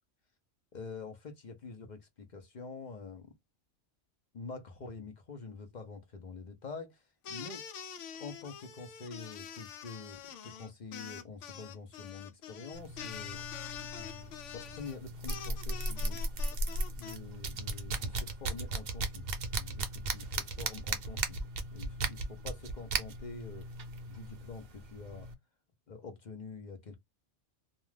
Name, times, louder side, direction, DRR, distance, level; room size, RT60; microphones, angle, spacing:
voice 1, 0.7-3.4 4.3-7.7 8.2-13.5 13.9-16.2 16.7-19.2 19.5-21.4 21.7-23.7 24.1-25.3 25.9-27.0, left 4 dB, 50° left, 0.6 m, -46 dB
sound 1, 7.2-17.2, left 8 dB, 80° left, 0.9 m, -45 dB
sound 2, 12.7-25.3, right 2 dB, 60° right, 0.8 m, -37 dB
2.3 x 2.3 x 3.1 m
omnidirectional pair, 1.3 m